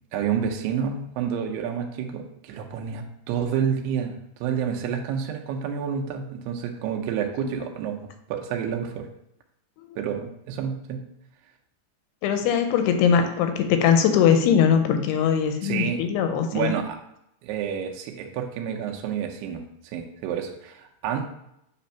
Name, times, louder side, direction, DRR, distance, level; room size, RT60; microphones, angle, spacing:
voice 1, 0.1-4.1 4.4-8.0 8.3-9.1 10.0-11.0 15.6-16.0 16.5-17.0 17.4-21.3, right 8 dB, 80° right, 2 dB, 2.7 m, -29 dB
voice 2, 12.2-16.7, left 7 dB, 85° left, 6 dB, 2.5 m, -21 dB
8.4 x 3.4 x 5.6 m, 0.78 s
omnidirectional pair, 4.8 m